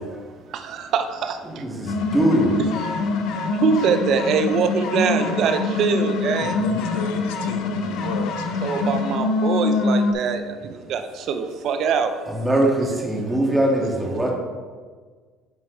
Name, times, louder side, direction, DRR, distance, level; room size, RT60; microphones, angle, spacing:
voice 1, 0.7-1.3 3.6-6.5 8.6-10.4 10.9-11.0 11.3-12.1, right 6 dB, 60° right, 8 dB, 0.6 m, -22 dB
voice 2, 1.5-2.6 12.3-14.3, right 1 dB, 10° right, -2 dB, 1.8 m, -21 dB
sound 1, 1.9-10.1, left 3 dB, 70° left, 0.8 m, -24 dB
voice 3, 6.4-9.0, left 6 dB, 85° left, 7 dB, 0.5 m, -33 dB
10.0 x 4.4 x 3.2 m, 1.5 s
supercardioid pair, 85°, 0 cm